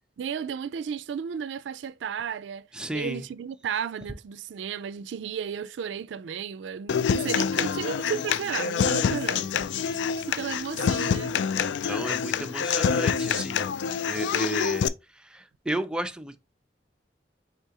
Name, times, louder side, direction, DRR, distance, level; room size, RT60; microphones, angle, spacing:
voice 1, 0.2-2.7 2.9-9.5 9.8-9.9 10.3-11.3, right 7 dB, 85° right, 0.4 m, -33 dB
voice 2, 2.7-3.3 11.9-13.6 14.1-14.9 15.3-16.4, right 1 dB, 5° right, 0.4 m, -33 dB
Human voice / Acoustic guitar, 6.9-14.9, left 6 dB, 80° left, 0.3 m, -26 dB
4.7 x 3.7 x 2.8 m
head